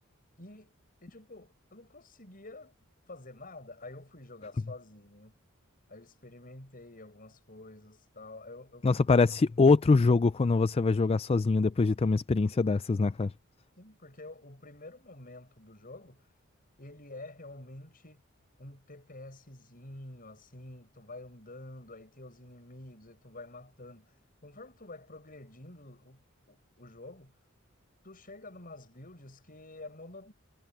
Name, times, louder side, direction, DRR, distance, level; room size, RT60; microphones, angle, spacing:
voice 1, 0.4-0.7 1.0-2.7 3.1-5.3 5.9-9.1 13.8-16.3 16.8-18.2 18.6-24.2 24.4-27.4 28.0-30.3, left 2 dB, 45° left, 7.8 m, -48 dB
voice 2, 8.8-13.3, left 4 dB, 30° left, 0.4 m, -24 dB
head